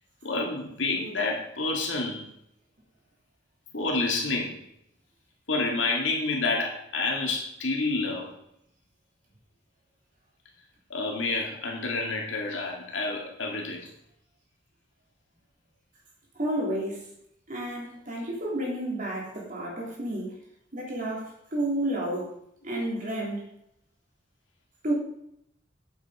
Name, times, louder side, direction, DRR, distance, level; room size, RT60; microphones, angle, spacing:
voice 1, 0.2-2.3 3.7-4.6 5.5-8.3 10.9-13.9, left 3 dB, 80° left, 0 dB, 2.3 m, -29 dB
voice 2, 16.3-17.0 17.5-20.3 20.7-22.3 22.6-23.4 24.8-24.9, right 1 dB, 45° right, -3 dB, 3.1 m, -31 dB
8.4 x 7.3 x 4.9 m, 0.76 s
head